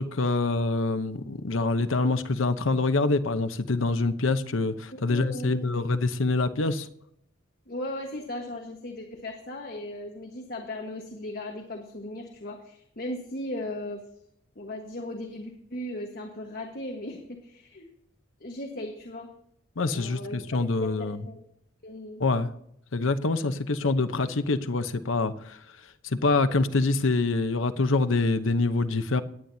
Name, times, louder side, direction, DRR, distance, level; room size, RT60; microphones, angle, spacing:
voice 1, 0.0-6.9 19.8-21.2 22.2-22.5 22.9-25.6 26.0-29.2, left 3 dB, 80° left, 0.8 m, -25 dB
voice 2, 5.1-5.7 7.7-14.0 14.5-17.9 18.4-19.3 19.9-21.4 21.8-22.2, left 1 dB, 45° left, 1.4 m, -37 dB
18.5 x 8.9 x 2.8 m
head